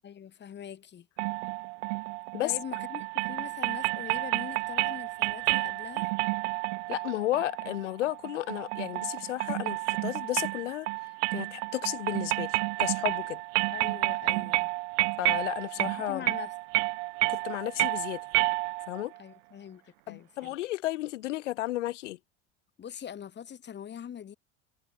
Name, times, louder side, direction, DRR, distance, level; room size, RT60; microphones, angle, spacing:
voice 1, 0.0-1.1 2.4-6.1 13.7-14.7 16.0-16.5 19.2-19.8 20.1-20.6 22.8-24.4, left 9 dB, 30° left, 4.8 m, -42 dB
sound 1, 1.2-19.0, right 26 dB, 70° right, 0.8 m, -30 dB
voice 2, 6.9-10.9 11.3-13.4 15.2-16.2 17.3-18.2 18.9-19.1 20.1-22.2, left 16 dB, 85° left, 2.7 m, -33 dB
supercardioid pair, 120°, 35 cm